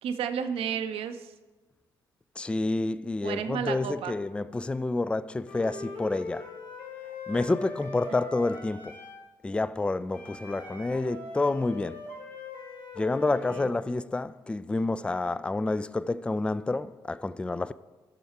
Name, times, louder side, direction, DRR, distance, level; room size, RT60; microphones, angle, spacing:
voice 1, 0.0-1.3 3.2-4.2 13.5-13.7, right 8 dB, 55° right, 0.7 m, -32 dB
voice 2, 2.4-6.5 7.3-9.0 9.4-12.0 13.0-17.7, left 2 dB, 10° left, 0.3 m, -29 dB
Wind instrument woodwind instrument, 5.4-9.3 10.1-13.8, left 3 dB, 70° left, 1.6 m, -41 dB
15.5 x 6.4 x 4.4 m
figure-of-eight pair, 40°, 12 cm